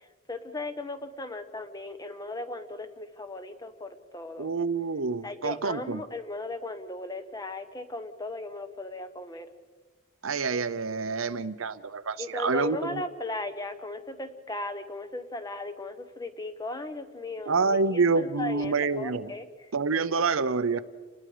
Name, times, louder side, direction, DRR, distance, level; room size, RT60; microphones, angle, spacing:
voice 1, 0.0-4.5 5.2-9.5 12.2-19.5, left 2 dB, 20° left, 9 dB, 1.1 m, -37 dB
voice 2, 4.4-6.0 10.2-13.0 17.5-19.3 19.7-20.8, right 4 dB, 75° right, 13 dB, 0.8 m, -27 dB
28.5 x 20.5 x 5.0 m, 1.5 s
head